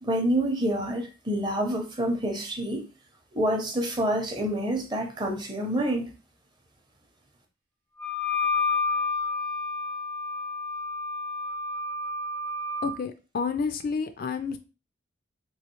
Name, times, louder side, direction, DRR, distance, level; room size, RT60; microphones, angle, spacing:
voice 1, 0.0-2.8 3.3-6.1, right 1 dB, 20° right, 0.6 m, -27 dB
Wind instrument woodwind instrument, 8.0-13.0, left 3 dB, 90° right, 0.9 m, -30 dB
voice 2, 12.8-14.6, left 5 dB, 45° left, 0.3 m, -30 dB
3.1 x 3.0 x 3.0 m
head